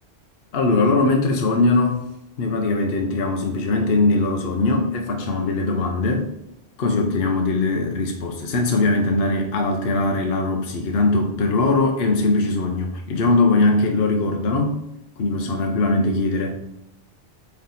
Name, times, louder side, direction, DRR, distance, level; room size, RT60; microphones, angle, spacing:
voice 1, 0.5-2.0 2.4-6.3 6.8-14.8 15.2-16.6, left 3 dB, 60° left, 3 dB, 0.9 m, -21 dB
8.4 x 3.4 x 4.0 m, 0.84 s
omnidirectional pair, 1.2 m